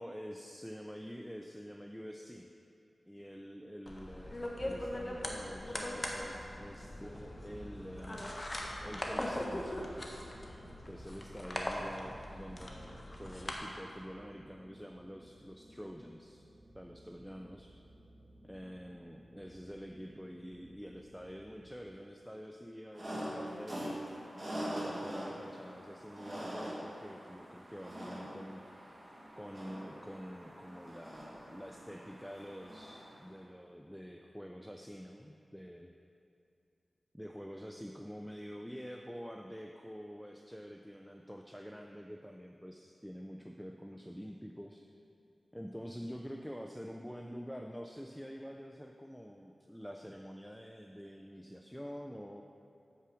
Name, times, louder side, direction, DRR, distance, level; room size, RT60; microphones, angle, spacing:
voice 1, 0.0-2.5 3.1-10.1 10.9-16.5 16.7-17.7 18.4-24.0 24.8-28.6 29.3-35.9 37.1-44.8 45.5-52.4, equal, ahead, 2 dB, 0.4 m, -47 dB
sound 1, 3.9-13.5, left 1 dB, 30° left, 0.9 m, -40 dB
sound 2, 4.4-21.8, equal, 50° right, 2.0 m, -59 dB
sound 3, 22.9-33.2, equal, 30° right, 1.7 m, -43 dB
7.4 x 5.6 x 4.9 m, 2.6 s
wide cardioid pair, 70°, 0 cm